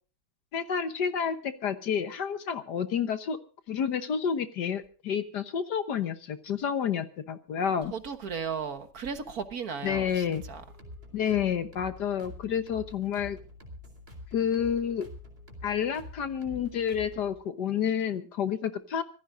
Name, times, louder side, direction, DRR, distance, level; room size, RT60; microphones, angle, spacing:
voice 1, 0.5-3.4 3.7-7.9 9.8-10.4 11.1-13.4 14.3-15.1 15.6-19.0, left 8 dB, 60° left, 1.6 m, -29 dB
voice 2, 7.9-10.6, right 6 dB, 50° right, 1.7 m, -35 dB
sound 1, 9.8-17.4, left 1 dB, 30° right, 3.9 m, -47 dB
25.5 x 16.0 x 2.6 m
omnidirectional pair, 2.1 m